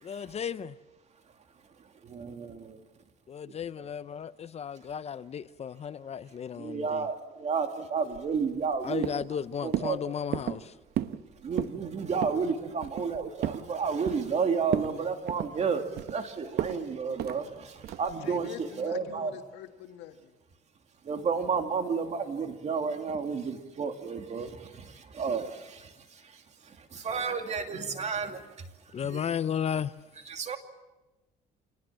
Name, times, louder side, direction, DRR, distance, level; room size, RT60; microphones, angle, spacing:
voice 1, 0.0-0.8 3.3-7.1 8.8-10.7 28.9-29.9, left 8 dB, 40° left, 15 dB, 0.7 m, -34 dB
voice 2, 2.0-2.8 6.6-9.0 9.6-10.0 11.4-19.3 21.0-28.7 29.0-29.2 30.3-30.6, right 5 dB, 40° right, 6 dB, 2.7 m, -32 dB
sound 1, 8.1-8.8 9.0-9.4 9.7-9.9 10.3-10.6 10.9-11.2 11.5-11.8 12.2-12.4 12.8-13.6 14.0-14.4 14.7-14.9 15.3-16.2 16.6-16.8 17.2-17.4 17.8-18.1, right 12 dB, 70° right, 1.1 m, -33 dB
voice 3, 18.2-20.3, left 10 dB, 90° left, 5 dB, 1.9 m, -45 dB
26.5 x 20.0 x 7.6 m, 1.1 s
cardioid pair, 110°, 17 cm